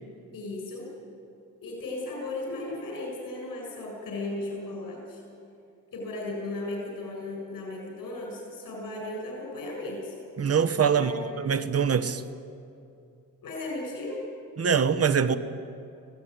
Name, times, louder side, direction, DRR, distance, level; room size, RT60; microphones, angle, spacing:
voice 1, 0.3-0.9 1.6-5.2 5.9-10.2 10.9-11.2 13.4-14.2, left 2 dB, 90° left, -1 dB, 7.0 m, -36 dB
voice 2, 10.4-12.2 14.6-15.4, right 7 dB, 45° right, 10 dB, 1.2 m, -24 dB
24.5 x 17.0 x 9.6 m, 2.6 s
cardioid pair, 95°, 33 cm